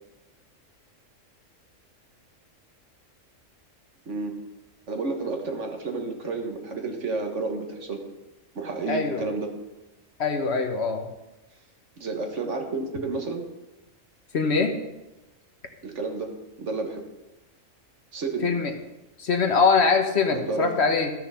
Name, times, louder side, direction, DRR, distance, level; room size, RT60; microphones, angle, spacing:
voice 1, 4.1-4.4 4.9-8.0 8.5-9.5 12.0-13.5 15.8-16.3 16.6-17.1 18.1-18.5 20.3-20.7, right 3 dB, 65° right, 3 dB, 1.7 m, -31 dB
voice 2, 8.9-9.2 10.2-11.1 14.3-14.7 18.4-18.7 19.2-21.1, left 4 dB, 55° left, 4 dB, 1.3 m, -23 dB
13.0 x 6.4 x 5.7 m, 1.1 s
omnidirectional pair, 1.4 m